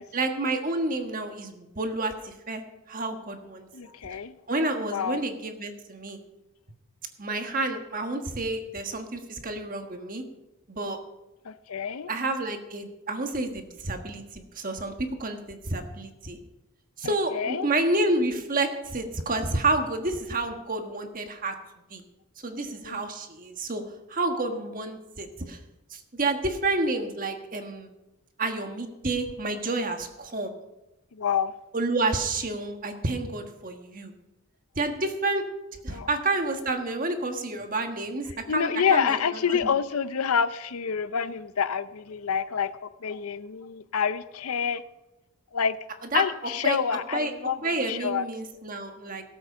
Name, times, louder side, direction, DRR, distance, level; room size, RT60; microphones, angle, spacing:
voice 1, 0.1-2.6 2.9-3.7 4.5-6.2 7.2-10.2 10.7-11.0 12.1-16.4 17.0-21.6 21.9-22.0 22.4-23.8 24.1-25.6 25.9-27.9 28.4-30.5 31.7-34.1 34.7-35.4 35.8-39.2 39.5-39.6 46.1-46.2 46.6-46.8 47.1-47.3 47.6-49.2, right 2 dB, 40° right, 5 dB, 1.4 m, -29 dB
voice 2, 3.7-4.3 4.9-5.2 11.4-12.1 17.0-17.7 22.8-23.0 31.1-31.5 35.9-36.1 38.5-44.8 45.5-45.8 46.1-48.3, left 7 dB, 85° left, 14 dB, 0.6 m, -27 dB
17.5 x 8.0 x 5.5 m, 0.97 s
head